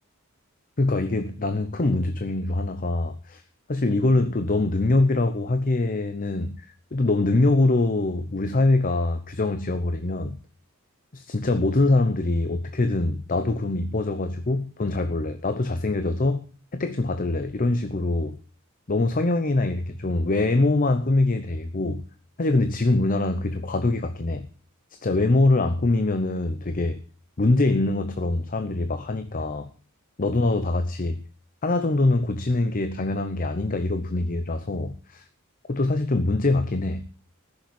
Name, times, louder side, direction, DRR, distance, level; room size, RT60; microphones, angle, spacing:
voice 1, 0.8-3.4 3.7-6.7 6.9-10.4 11.1-16.5 16.7-18.4 18.9-22.0 22.4-24.5 25.0-27.0 27.4-29.7 30.2-31.2 31.6-35.2 35.7-37.0, left 2 dB, 40° left, 0.7 m, -23 dB
14.5 x 6.8 x 6.9 m
head